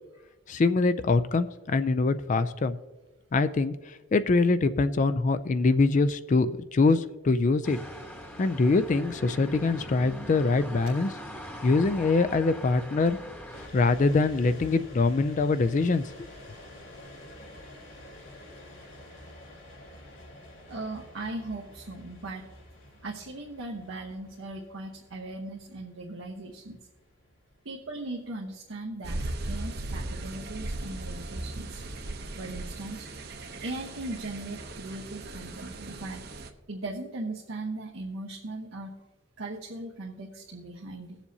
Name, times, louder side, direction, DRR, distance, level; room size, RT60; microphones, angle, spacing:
voice 1, 0.5-2.8 3.3-7.8 8.4-11.1 11.6-13.2 13.7-16.0, left 3 dB, 40° left, 12 dB, 0.4 m, -24 dB
sound 1, 7.6-13.7, equal, 10° left, 1.0 m, -42 dB
sound 2, 13.5-30.5, left 1 dB, 75° left, 4.1 m, -49 dB
voice 2, 20.7-22.5 23.0-26.8 27.6-31.8 32.4-33.1 33.6-36.3 36.7-39.0 39.4-41.2, right 2 dB, 85° right, -2 dB, 1.0 m, -38 dB
sound 3, 29.0-36.5, right 2 dB, 55° right, 0.8 m, -37 dB
20.0 x 7.2 x 2.7 m, 1.1 s
head